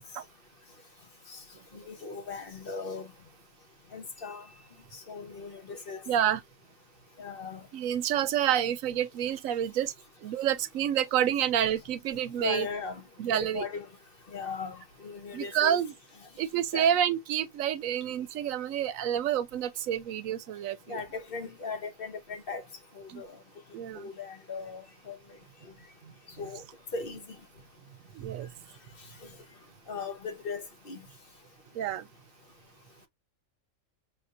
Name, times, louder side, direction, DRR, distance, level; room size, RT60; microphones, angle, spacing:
voice 1, 1.7-3.1 3.9-4.4 5.1-6.0 7.2-7.6 12.4-13.0 13.4-13.9 14.3-14.8 15.0-15.8 16.7-16.9 20.9-22.6 23.0-23.4 23.9-25.2 26.4-26.6 26.9-27.2 29.9-31.0, left 4 dB, 45° left, 1.2 m, -38 dB
voice 2, 6.1-6.4 7.7-9.9 10.2-12.7 13.2-13.7 15.3-15.9 16.4-21.0 23.1-23.2 23.7-24.1 26.1-26.2 28.1-28.5 31.7-32.1, right 10 dB, 85° right, 1.1 m, -28 dB
5.5 x 2.7 x 2.4 m
omnidirectional pair, 1.3 m